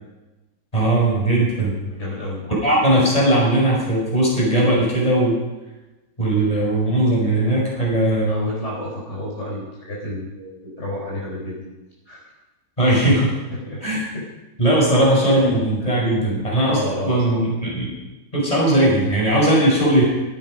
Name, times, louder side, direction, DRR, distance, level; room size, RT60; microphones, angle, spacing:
voice 1, 0.7-1.7 2.5-5.4 6.2-8.5 12.8-13.3 13.8-14.0 14.6-16.8 17.0-17.9 18.3-20.0, right 1 dB, 20° left, -3 dB, 5.9 m, -18 dB
voice 2, 1.9-2.4 8.3-11.6 12.1-12.3 13.5-13.8 14.1-14.3 15.3-15.5 16.7-17.4, left 1 dB, 40° left, -6 dB, 5.2 m, -30 dB
17.5 x 13.0 x 5.3 m, 1.1 s
omnidirectional pair, 1.9 m